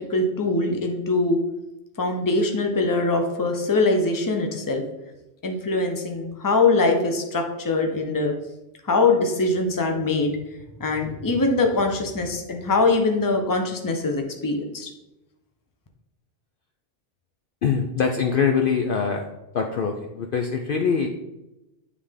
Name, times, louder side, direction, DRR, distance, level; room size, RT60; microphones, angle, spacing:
voice 1, 0.1-1.4 2.0-4.8 5.4-8.3 8.8-10.4 10.8-14.9, left 3 dB, 20° left, 3 dB, 0.6 m, -22 dB
voice 2, 17.6-19.3 19.5-21.1, left 6 dB, 60° left, 3 dB, 0.6 m, -23 dB
9.5 x 3.3 x 3.6 m, 0.94 s
omnidirectional pair, 1.2 m